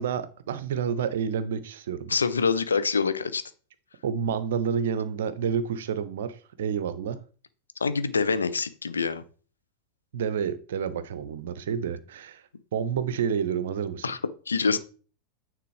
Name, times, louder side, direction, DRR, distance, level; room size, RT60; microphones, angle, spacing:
voice 1, 0.0-2.1 4.0-7.2 10.1-12.4 12.7-14.1, right 7 dB, 60° right, 0.6 m, -29 dB
voice 2, 2.1-3.4 7.8-9.2 14.0-14.2 14.5-14.8, left 5 dB, 75° left, 0.5 m, -25 dB
9.2 x 3.7 x 3.2 m
figure-of-eight pair, 90°, 0 cm